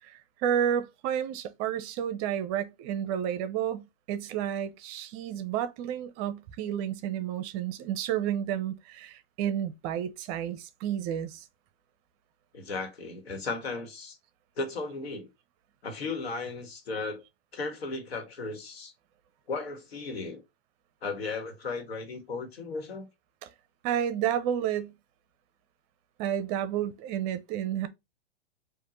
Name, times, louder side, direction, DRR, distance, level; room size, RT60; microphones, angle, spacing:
voice 1, 0.4-11.4 23.4-23.5 23.8-24.9 26.2-27.9, right 10 dB, 40° right, 0.7 m, -31 dB
voice 2, 12.5-14.2 14.6-15.3 15.8-17.2 17.5-18.9 19.5-20.4 21.0-23.1, left 3 dB, 90° left, 1.5 m, -35 dB
5.0 x 2.6 x 3.0 m
hypercardioid pair, 125°, 30 cm